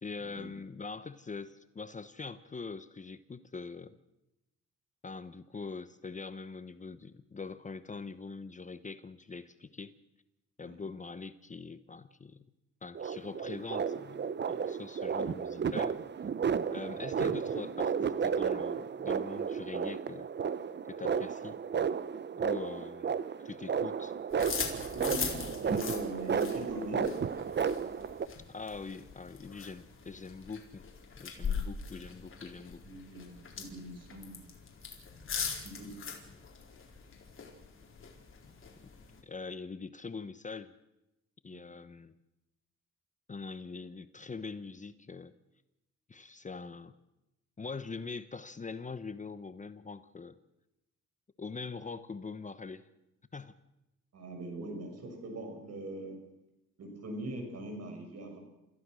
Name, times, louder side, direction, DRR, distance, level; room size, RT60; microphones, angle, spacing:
voice 1, 0.0-4.0 5.0-9.9 10.6-12.4 12.8-16.0 16.7-20.3 20.9-21.6 22.4-23.2 23.4-24.1 28.5-30.8 31.2-32.8 39.2-40.7 41.4-42.1 43.3-45.3 46.1-46.9 47.6-50.4 51.4-52.9 53.3-53.5, left 4 dB, 25° left, 13 dB, 0.9 m, -43 dB
sound 1, 12.9-28.3, right 6 dB, 35° right, 0.9 m, -33 dB
sound 2, 24.3-39.2, left 6 dB, 45° left, 4.3 m, -41 dB
voice 2, 24.9-27.1 31.4-31.8 32.8-34.5 35.6-36.1 41.5-41.7 54.1-56.2 56.8-58.4, right 1 dB, 55° right, 3 dB, 6.7 m, -42 dB
28.0 x 15.0 x 6.4 m, 0.93 s
cardioid pair, 90°, 30 cm